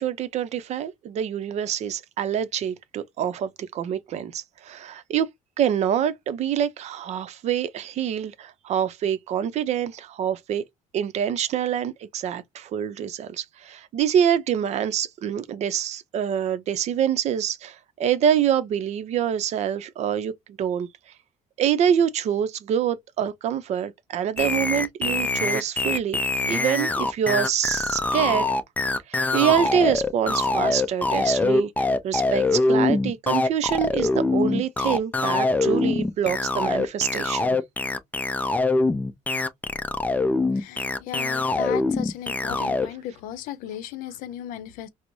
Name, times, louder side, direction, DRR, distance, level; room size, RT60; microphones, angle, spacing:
voice 1, 0.0-5.3 5.6-10.6 10.9-20.3 20.6-20.9 21.6-26.2 26.5-28.5 29.1-37.6, right 9 dB, 55° right, 0.5 m, -26 dB
sound 1, 24.4-42.9, left 3 dB, 10° left, 0.4 m, -24 dB
voice 2, 40.6-44.9, left 11 dB, 80° left, 0.6 m, -36 dB
4.5 x 2.0 x 2.6 m
cardioid pair, 125°, 14 cm